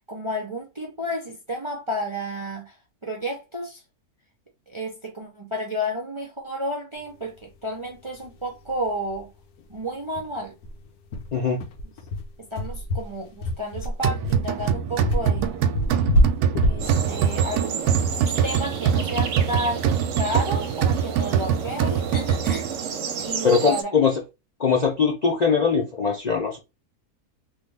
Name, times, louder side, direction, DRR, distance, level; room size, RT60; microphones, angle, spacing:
voice 1, 0.1-2.8 3.0-3.8 4.7-9.3 9.7-10.5 12.4-15.5 16.7-17.8 18.1-19.9 20.2-22.7 23.2-23.9, equal, 30° right, 0.5 m, -31 dB
sound 1, 8.2-8.3 8.6-8.7 9.1-9.2 9.6-9.7 10.1-18.6, equal, 90° left, 1.2 m, -26 dB
voice 2, 11.3-11.6 23.4-24.1 24.6-26.6, left 5 dB, 50° left, 0.5 m, -21 dB
sound 2, 14.0-22.9, right 8 dB, 90° right, 1.1 m, -24 dB
sound 3, 16.8-23.8, right 6 dB, 65° right, 0.9 m, -32 dB
3.1 x 2.5 x 3.2 m
omnidirectional pair, 1.6 m